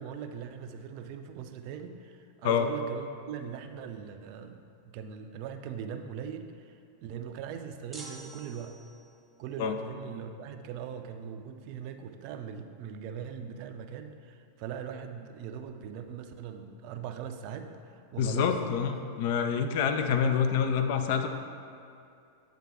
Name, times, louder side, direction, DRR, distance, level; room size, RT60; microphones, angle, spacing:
voice 1, 0.0-8.8 9.4-18.6, right 7 dB, 45° right, 7 dB, 0.4 m, -40 dB
sound 1, 7.9-9.3, right 2 dB, 10° right, 0.7 m, -47 dB
voice 2, 18.2-21.3, left 7 dB, 50° left, 6 dB, 0.4 m, -27 dB
8.0 x 3.7 x 4.2 m, 2.5 s
figure-of-eight pair, 90°, 0 cm